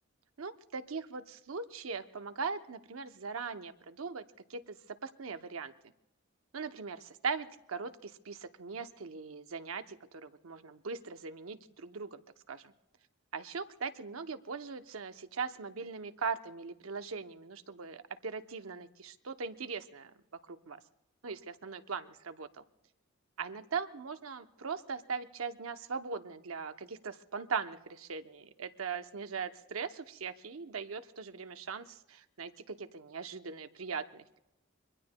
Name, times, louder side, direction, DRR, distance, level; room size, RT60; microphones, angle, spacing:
voice 1, 0.4-5.7 6.5-12.7 13.3-20.8 21.2-22.6 23.4-34.4, right 5 dB, 85° right, 9 dB, 0.7 m, -40 dB
25.5 x 22.5 x 2.2 m, 0.89 s
head